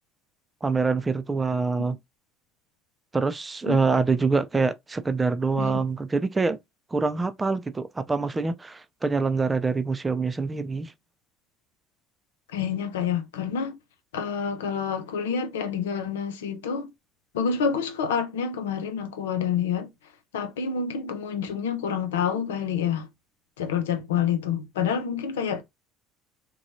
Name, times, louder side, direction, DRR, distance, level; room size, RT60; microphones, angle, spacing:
voice 1, 0.6-2.0 3.1-6.6 6.9-10.9, right 4 dB, 20° right, 0.4 m, -25 dB
voice 2, 12.5-13.7 14.1-16.9 17.3-19.9 20.3-23.1 23.6-25.6, left 7 dB, 85° left, 0.5 m, -28 dB
2.8 x 2.3 x 2.7 m
hypercardioid pair, 75°, 0 cm